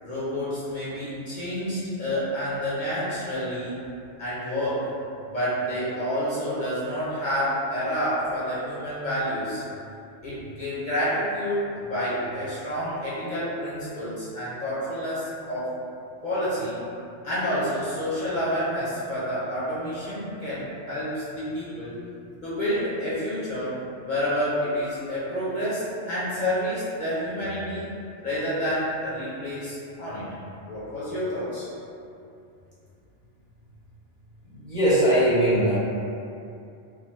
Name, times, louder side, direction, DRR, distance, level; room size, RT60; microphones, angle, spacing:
voice 1, 0.0-3.8 4.2-4.9 5.3-9.6 10.2-15.8 16.2-16.8 17.2-22.0 22.4-27.9 28.2-30.3 30.7-31.7, equal, 50° left, -10 dB, 0.7 m, -29 dB
voice 2, 34.5-35.8, right 1 dB, 5° right, -10 dB, 0.6 m, -20 dB
3.2 x 2.0 x 3.0 m, 2.6 s
omnidirectional pair, 1.2 m